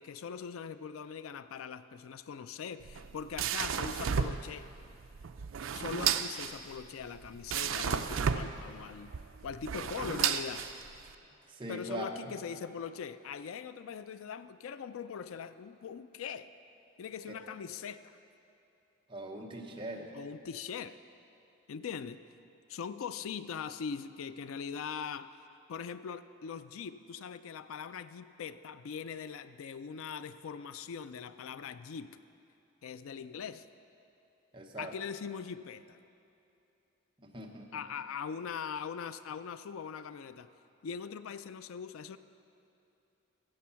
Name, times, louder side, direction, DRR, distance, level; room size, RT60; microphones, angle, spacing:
voice 1, 0.0-4.7 5.7-9.1 9.4-10.7 11.7-16.5 17.0-18.0 20.1-21.0 21.7-22.2 22.7-25.3 25.7-32.2 32.8-33.7 34.8-36.0 37.7-40.5 40.8-42.2, left 6 dB, 80° left, 13 dB, 0.4 m, -41 dB
sound 1, 2.8-11.1, right 7 dB, 70° right, 0.4 m, -33 dB
voice 2, 11.5-12.4 17.3-17.4 19.1-20.1 34.5-34.9 37.2-37.8, right 1 dB, 25° right, 0 dB, 0.9 m, -41 dB
14.5 x 7.8 x 5.7 m, 2.8 s
head